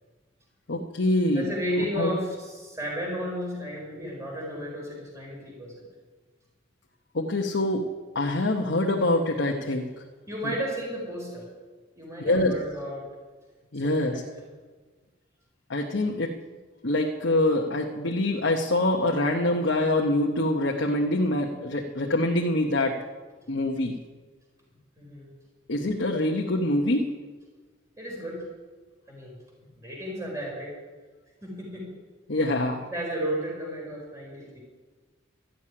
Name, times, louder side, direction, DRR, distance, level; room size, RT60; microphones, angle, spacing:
voice 1, 0.7-1.5 2.0-2.1 7.1-7.8 8.1-9.9 10.4-10.5 12.2-12.5 13.7-14.2 15.7-16.3 16.8-23.0 23.5-24.0 25.7-27.1 32.3-32.9, left 1 dB, 65° left, 0 dB, 1.1 m, -25 dB
voice 2, 1.3-5.9 10.3-11.5 12.0-13.1 13.8-14.4 25.0-25.3 28.0-28.4 29.1-29.4 29.8-30.7 31.4-31.9 32.9-34.6, equal, 15° right, -2 dB, 4.6 m, -33 dB
12.5 x 7.6 x 9.8 m, 1.3 s
head